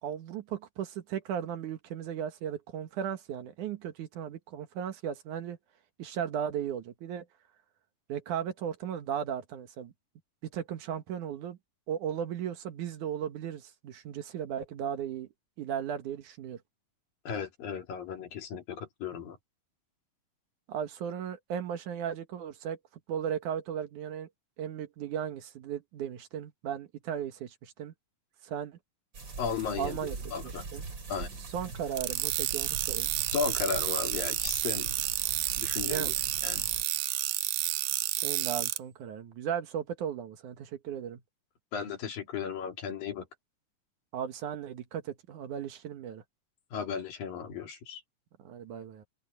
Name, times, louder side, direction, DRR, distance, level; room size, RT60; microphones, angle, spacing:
voice 1, 0.0-5.6 6.0-7.3 8.1-9.9 10.5-11.6 11.9-15.3 15.6-16.6 20.7-22.8 23.1-24.3 24.6-27.9 28.4-28.8 29.8-30.2 30.7-30.8 31.5-33.1 35.8-36.1 38.2-41.2 44.1-46.2 48.4-49.1, right 9 dB, 65° right, 2.7 m, -36 dB
voice 2, 17.3-19.4 29.4-30.6 31.1-31.3 33.3-34.9 35.6-36.1 36.4-36.7 41.7-43.3 46.7-48.0, left 6 dB, 85° left, 4.7 m, -35 dB
sound 1, 29.1-36.8, right 4 dB, 35° right, 3.6 m, -42 dB
sound 2, 32.0-38.8, right 16 dB, 90° right, 2.4 m, -30 dB
open air
omnidirectional pair, 3.9 m